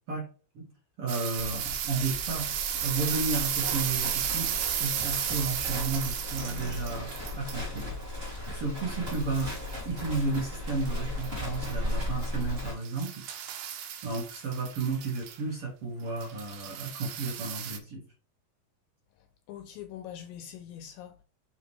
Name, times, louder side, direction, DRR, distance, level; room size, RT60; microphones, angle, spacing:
voice 1, 1.0-2.5 2.8-7.9 8.5-9.6 9.9-13.3 14.0-18.0, right 3 dB, 50° right, 1.9 m, -33 dB
sound 1, 1.1-7.8 9.1-10.4 10.9-11.3 11.5-15.4 16.2-17.8, right 9 dB, 80° right, 2.6 m, -34 dB
Livestock farm animals working animals, 1.4-12.7, left 1 dB, 20° right, 1.9 m, -36 dB
voice 2, 19.5-21.2, left 10 dB, 80° left, 2.1 m, -43 dB
7.3 x 3.9 x 3.2 m
omnidirectional pair, 4.4 m